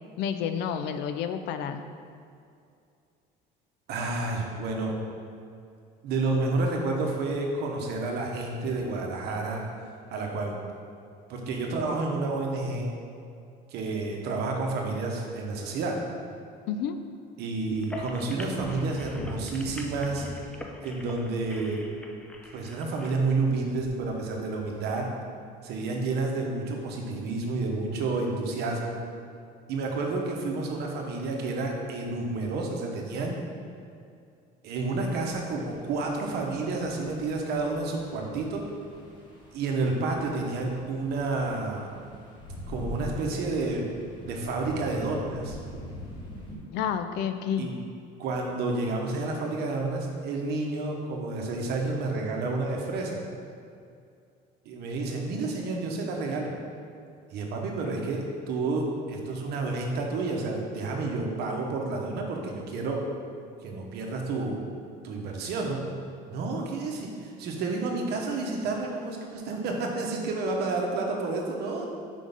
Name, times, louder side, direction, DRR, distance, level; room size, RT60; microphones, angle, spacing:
voice 1, 0.2-1.8 16.7-17.0 46.7-47.7, left 8 dB, 70° left, 9 dB, 0.4 m, -30 dB
voice 2, 3.9-4.9 6.0-9.6 10.1-10.6 11.3-12.9 13.7-16.0 17.4-20.3 20.8-21.8 22.5-25.1 25.6-29.0 29.7-33.4 34.6-38.7 39.5-41.9 42.7-43.9 44.2-45.6 47.6-47.7 48.2-53.2 54.6-56.5 57.3-63.1 63.6-64.7 65.0-65.9 66.3-71.9, right 3 dB, 65° right, 1 dB, 1.0 m, -30 dB
sound 1, 17.7-23.2, left 1 dB, 5° left, 0.4 m, -41 dB
sound 2, 34.8-46.6, left 1 dB, 25° left, 1.2 m, -44 dB
5.1 x 3.7 x 5.3 m, 2.4 s
cardioid pair, 125°, 18 cm